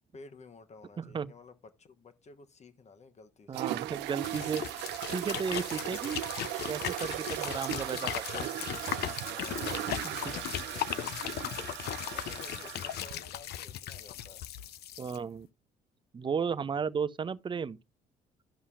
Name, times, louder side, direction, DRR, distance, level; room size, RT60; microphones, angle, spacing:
voice 1, 0.1-3.8 9.2-14.4, left 4 dB, 40° left, 1.2 m, -53 dB
voice 2, 1.0-1.3 3.5-4.6 5.0-6.2 6.7-8.5 10.0-10.1 15.0-15.5 16.1-17.8, right 6 dB, 25° right, 0.5 m, -34 dB
sound 1, 3.5-13.2, right 15 dB, 75° right, 0.5 m, -38 dB
sound 2, 4.2-15.2, left 12 dB, 65° left, 0.6 m, -38 dB
12.5 x 5.5 x 2.5 m
supercardioid pair, 65°, 18 cm